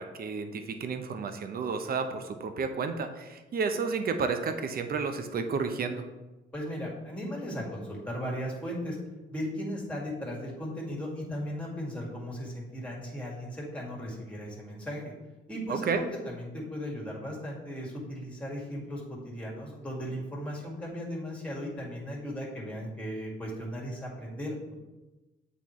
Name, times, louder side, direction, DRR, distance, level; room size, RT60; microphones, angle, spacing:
voice 1, 0.0-6.1 15.7-16.0, right 5 dB, 50° right, 7 dB, 0.7 m, -31 dB
voice 2, 6.5-9.0 9.3-15.0 15.5-24.7, equal, 5° left, -3 dB, 2.0 m, -37 dB
8.0 x 3.9 x 3.1 m, 1.1 s
cardioid pair, 90°, 20 cm